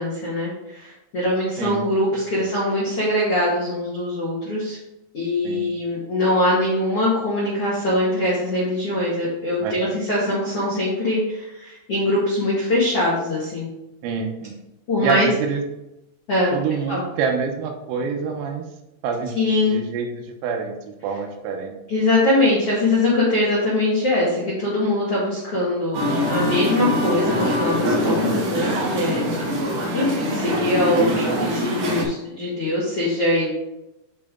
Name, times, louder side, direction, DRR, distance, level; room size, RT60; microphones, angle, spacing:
voice 1, 0.0-4.8 5.1-13.7 14.9-15.3 16.3-16.5 16.9-17.0 19.3-19.8 21.9-26.0 26.3-33.5, left 1 dB, 80° left, -7 dB, 1.3 m, -22 dB
voice 2, 9.6-10.0 14.0-14.6 15.0-15.6 16.5-18.7 19.0-19.4 19.6-21.8 30.4-30.6, right 6 dB, 80° right, 3 dB, 3.5 m, -27 dB
Musical instrument, 25.9-32.1, equal, 60° right, 2.9 m, -23 dB
10.5 x 3.8 x 3.7 m, 0.91 s
omnidirectional pair, 6.0 m